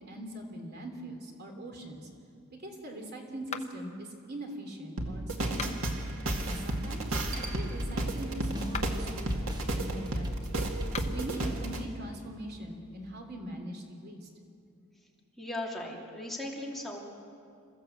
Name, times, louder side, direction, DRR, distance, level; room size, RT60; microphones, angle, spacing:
voice 1, 0.1-2.1 2.5-5.8 6.4-10.6 11.0-14.3, right 1 dB, 50° right, 3 dB, 3.0 m, -41 dB
sound 1, 3.5-4.0 5.4-6.0 8.6-9.1 10.8-11.3, left 6 dB, 30° left, 0.9 m, -41 dB
sound 2, 5.0-11.8, right 1 dB, 75° right, 2.2 m, -33 dB
sound 3, 6.1-11.1, equal, 20° right, 1.2 m, -40 dB
voice 2, 15.4-17.0, left 1 dB, ahead, -3 dB, 2.5 m, -37 dB
27.5 x 14.5 x 8.0 m, 2.4 s
head